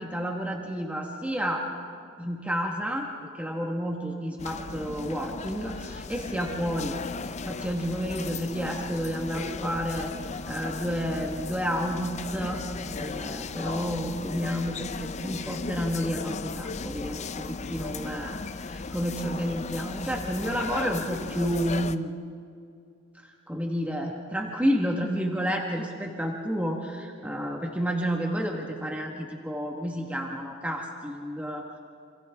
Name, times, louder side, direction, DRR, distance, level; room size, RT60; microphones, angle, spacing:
voice 1, 0.0-1.7 2.2-7.0 7.5-10.1 10.5-12.6 13.0-17.2 17.5-22.1 23.2-31.6, equal, 5° right, 1 dB, 1.4 m, -30 dB
sound 1, 4.4-22.0, left 4 dB, 30° left, 0.5 m, -36 dB
28.0 x 27.0 x 3.5 m, 2.4 s
head